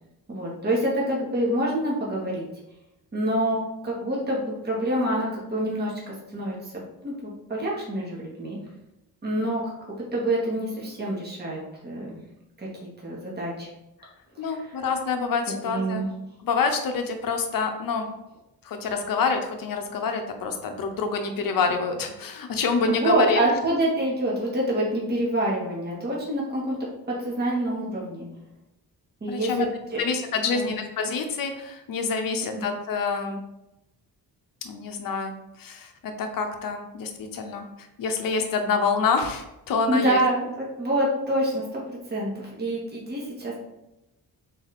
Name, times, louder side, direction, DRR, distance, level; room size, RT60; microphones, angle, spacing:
voice 1, 0.3-2.5 3.1-6.7 7.0-7.1 7.5-8.6 9.2-12.2 12.6-12.7 13.0-13.7 14.3-14.8 15.6-16.1 22.8-26.8 27.1-28.3 29.2-30.0 30.5-30.7 32.3-32.7 39.9-43.5, right 1 dB, 25° right, -4 dB, 1.3 m, -27 dB
voice 2, 14.4-16.0 16.4-18.1 18.6-23.5 29.3-29.7 30.0-33.4 34.6-35.3 35.6-37.6 38.0-40.2, left 5 dB, 60° left, 5 dB, 0.7 m, -27 dB
4.0 x 2.7 x 4.1 m, 0.89 s
cardioid pair, 125°, 38 cm